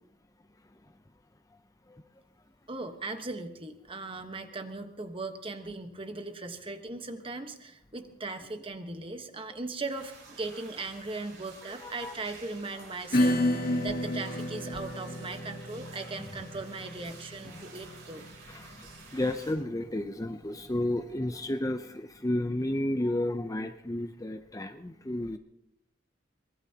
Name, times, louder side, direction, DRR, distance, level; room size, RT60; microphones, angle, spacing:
voice 1, 2.7-18.2, right 3 dB, 30° right, 7 dB, 1.3 m, -39 dB
sound 1, 9.9-19.5, right 4 dB, 70° right, 4.8 m, -51 dB
voice 2, 11.8-12.1 18.5-25.4, left 1 dB, 15° left, 7 dB, 0.6 m, -32 dB
Acoustic guitar / Strum, 13.1-20.3, left 1 dB, 50° left, 2.1 m, -32 dB
23.5 x 20.5 x 2.9 m, 0.82 s
head